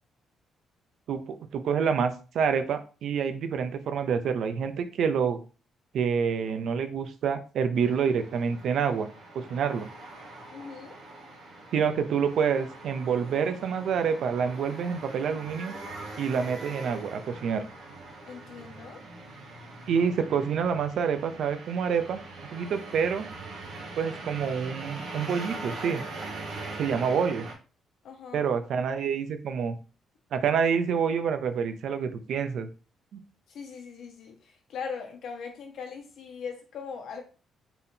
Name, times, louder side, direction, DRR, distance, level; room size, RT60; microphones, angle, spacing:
voice 1, 1.1-5.4 5.9-9.1 9.3-9.9 11.7-15.7 16.2-17.6 19.9-23.3 24.0-26.0 26.8-27.5 28.3-29.8 30.3-32.7 33.1-33.2, right 6 dB, 70° right, 0.6 m, -27 dB
sound 1, 7.7-27.5, right 2 dB, 90° right, 1.7 m, -42 dB
voice 2, 10.5-11.0 18.2-19.0 28.0-28.5 33.5-37.2, left 6 dB, 70° left, 1.1 m, -40 dB
4.1 x 3.7 x 2.7 m
cardioid pair, 90°, 0 cm